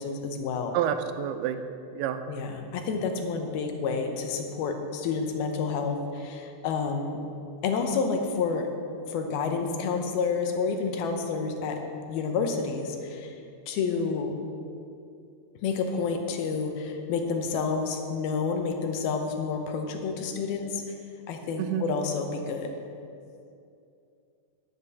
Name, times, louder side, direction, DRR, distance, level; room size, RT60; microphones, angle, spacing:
voice 1, 0.0-0.8 2.3-7.2 7.6-8.7 9.1-11.8 12.1-13.4 13.7-14.3 15.6-20.8 21.3-22.7, left 5 dB, 80° left, 4 dB, 2.7 m, -29 dB
voice 2, 0.7-1.6 2.0-2.2 21.6-21.9, right 10 dB, 90° right, 9 dB, 2.6 m, -28 dB
10.0 x 7.3 x 6.9 m, 2.5 s
omnidirectional pair, 4.5 m